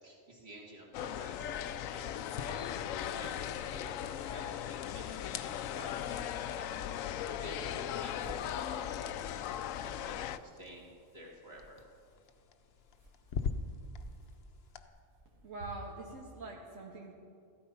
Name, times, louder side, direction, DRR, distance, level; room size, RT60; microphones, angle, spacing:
voice 1, 0.0-4.6 4.8-9.2 9.8-11.8, equal, 50° right, -2 dB, 2.8 m, -52 dB
sound 1, 0.9-10.4, left 10 dB, 85° left, 1.0 m, -38 dB
sound 2, 1.0-16.2, right 1 dB, 35° right, 0.8 m, -60 dB
sound 3, 1.3-14.9, left 5 dB, 55° left, 0.9 m, -46 dB
voice 2, 15.4-17.1, right 2 dB, 80° right, -2 dB, 1.8 m, -44 dB
15.0 x 13.0 x 5.6 m, 2.4 s
omnidirectional pair, 1.3 m